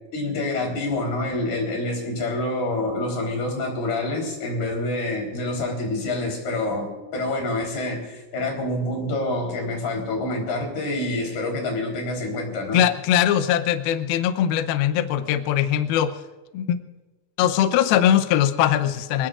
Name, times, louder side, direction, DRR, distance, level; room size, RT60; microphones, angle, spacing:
voice 1, 0.1-12.8, left 2 dB, 55° left, 1 dB, 5.7 m, -27 dB
voice 2, 12.7-16.1 16.5-16.8 17.4-19.3, left 10 dB, 85° left, 9 dB, 2.1 m, -21 dB
26.0 x 19.0 x 2.5 m, 1.2 s
omnidirectional pair, 5.4 m